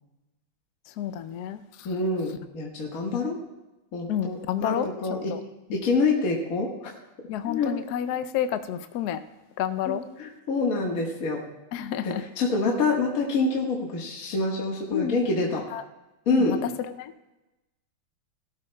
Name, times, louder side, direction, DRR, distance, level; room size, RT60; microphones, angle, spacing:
voice 1, 1.0-1.6 3.1-3.2 4.1-5.4 7.3-9.2 9.6-10.0 11.7-12.2 14.9-15.2 15.7-15.8 16.3-17.1, left 10 dB, 75° left, 11 dB, 0.9 m, -30 dB
voice 2, 1.9-3.4 3.9-5.3 5.7-6.7 7.5-7.7 9.9-11.4 12.0-15.6 16.3-16.6, left 3 dB, 45° left, -2 dB, 1.8 m, -26 dB
18.5 x 13.0 x 2.2 m, 1.0 s
omnidirectional pair, 2.3 m